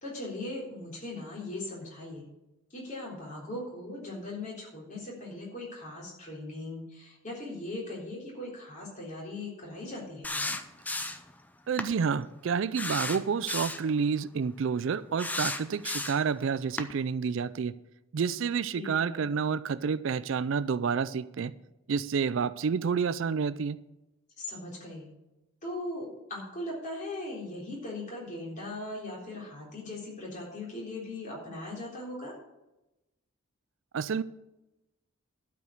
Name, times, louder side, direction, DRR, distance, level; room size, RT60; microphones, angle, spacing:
voice 1, 0.0-2.3 2.7-10.5 18.8-19.3 24.4-25.1 25.6-32.3, left 2 dB, 35° left, 3.7 m, -39 dB
sound 1, 10.2-11.3 11.8-11.9 12.8-13.9 15.2-16.3 16.8-16.9, left 2 dB, 5° left, 0.5 m, -33 dB
voice 2, 11.7-17.7 18.1-21.5 21.9-23.8 33.9-34.2, right 6 dB, 65° right, 0.4 m, -29 dB
12.0 x 5.2 x 8.0 m
head